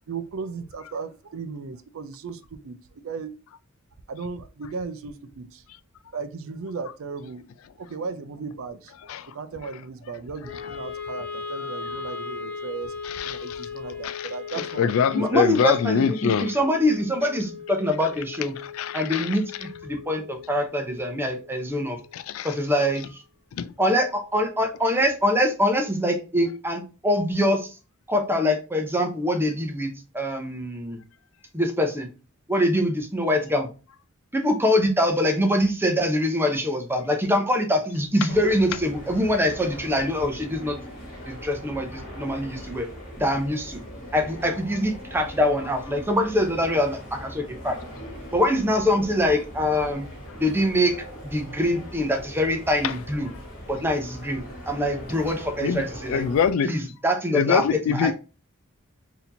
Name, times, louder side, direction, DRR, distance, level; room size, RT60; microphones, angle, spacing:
voice 1, 0.1-2.8 3.0-3.3 4.1-5.6 6.1-7.5 7.8-12.9 13.2-15.5, right 5 dB, 65° right, 0.4 m, -36 dB
Wind instrument woodwind instrument, 10.4-22.7, left 5 dB, 5° left, 1.4 m, -38 dB
voice 2, 13.0-13.7 14.0-16.5 18.7-19.4 22.1-22.5 23.6-23.7 52.8-52.9 55.6-55.8 56.1-56.7 57.3-58.1, left 7 dB, 70° left, 0.3 m, -24 dB
voice 3, 15.1-18.6 18.9-22.0 22.4-23.2 23.8-27.7 28.1-31.0 31.5-32.1 32.5-33.7 34.3-40.8 41.3-42.9 43.2-43.8 44.1-47.8 48.3-50.1 50.4-51.0 51.2-53.3 53.7-56.3 56.6-58.1, equal, 10° right, 0.7 m, -24 dB
sound 1, 38.3-56.5, equal, 45° left, 1.6 m, -40 dB
4.1 x 2.8 x 2.6 m
head